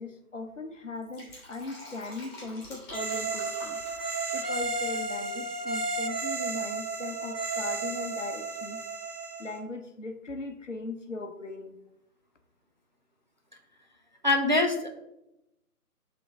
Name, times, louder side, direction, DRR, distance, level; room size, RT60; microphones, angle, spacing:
voice 1, 0.0-3.8 4.3-8.8 9.4-11.7, left 3 dB, 50° left, 6 dB, 1.0 m, -39 dB
Fill (with liquid), 0.9-5.7 6.0-6.1, left 1 dB, 15° left, 2.3 m, -47 dB
sound 1, 2.9-9.6, right 3 dB, 75° right, 1.9 m, -33 dB
voice 2, 14.2-14.9, left 2 dB, 30° right, 1 dB, 0.6 m, -23 dB
10.5 x 3.8 x 3.6 m, 0.85 s
figure-of-eight pair, 150°, 46 cm